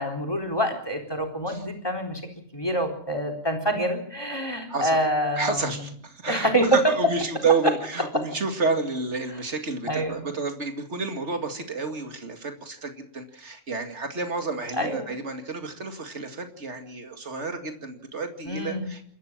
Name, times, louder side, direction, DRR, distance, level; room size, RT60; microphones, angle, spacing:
voice 1, 0.0-2.2 2.5-5.6 6.3-6.8 9.9-10.3 14.8-15.2 18.5-18.9, right 1 dB, 20° left, 5 dB, 3.9 m, -26 dB
voice 2, 4.7-5.0 5.4-19.0, right 4 dB, 85° right, 5 dB, 2.6 m, -30 dB
28.0 x 13.5 x 7.4 m, 0.62 s
omnidirectional pair, 1.2 m